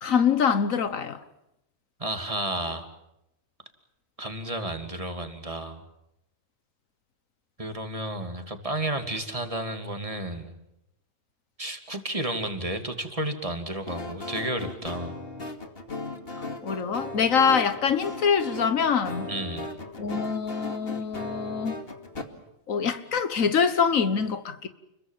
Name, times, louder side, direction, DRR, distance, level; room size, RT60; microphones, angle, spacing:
voice 1, 0.0-1.2 16.6-19.3 20.0-21.8 22.7-24.7, left 6 dB, 85° left, 1.7 m, -24 dB
voice 2, 2.0-2.9 4.2-5.8 7.6-10.5 11.6-15.1 19.3-19.7, right 1 dB, 25° right, 2.9 m, -32 dB
sound 1, 13.9-22.2, left 2 dB, 45° left, 2.6 m, -37 dB
30.0 x 22.5 x 7.4 m
omnidirectional pair, 1.4 m